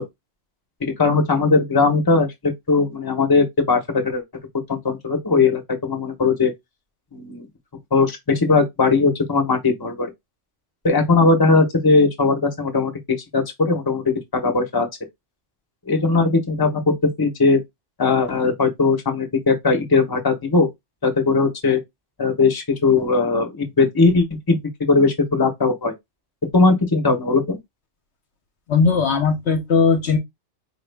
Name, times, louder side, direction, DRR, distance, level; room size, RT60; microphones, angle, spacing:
voice 1, 0.8-4.2 4.7-6.5 7.1-7.5 7.9-10.1 10.8-14.0 14.3-14.9 15.9-17.6 18.0-20.7 21.0-21.8 22.2-25.9 26.5-27.6, left 4 dB, 20° left, 1.0 m, -19 dB
voice 2, 28.7-30.2, left 5 dB, 65° left, 1.1 m, -18 dB
4.8 x 2.4 x 3.4 m
omnidirectional pair, 1.3 m